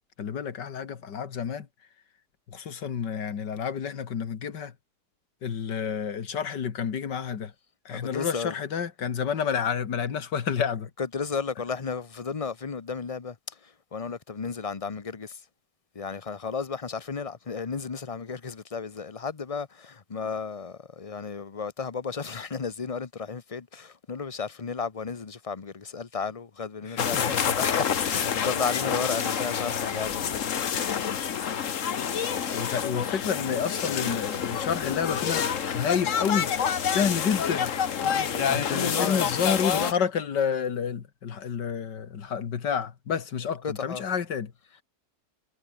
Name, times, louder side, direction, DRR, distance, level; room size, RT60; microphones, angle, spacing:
voice 1, 0.2-1.7 2.5-4.7 5.4-7.5 7.9-10.9 26.8-27.5 32.5-36.5 36.9-37.7 38.5-44.5, left 7 dB, 90° left, 2.4 m, -29 dB
voice 2, 7.9-8.5 11.0-15.4 15.9-30.4 38.0-39.9 43.6-44.0, left 5 dB, 30° left, 0.7 m, -33 dB
sound 1, 27.0-39.9, left 8 dB, 50° left, 1.4 m, -28 dB
omnidirectional pair, 1.8 m